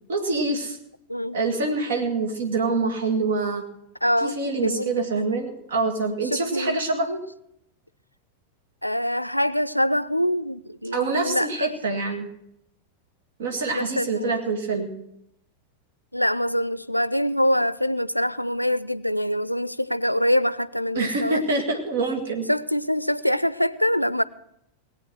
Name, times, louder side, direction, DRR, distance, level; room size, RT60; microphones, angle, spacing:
voice 1, 0.1-0.8 1.3-3.7 4.2-7.2 10.9-12.3 13.4-15.0 20.9-22.5, right 3 dB, 60° right, 2.1 m, -25 dB
voice 2, 4.0-5.3 6.3-6.8 8.8-11.7 13.7-14.4 16.1-21.4 22.5-24.2, equal, 90° left, 0.4 m, -24 dB
18.5 x 8.5 x 6.2 m
figure-of-eight pair, 90°, 0 cm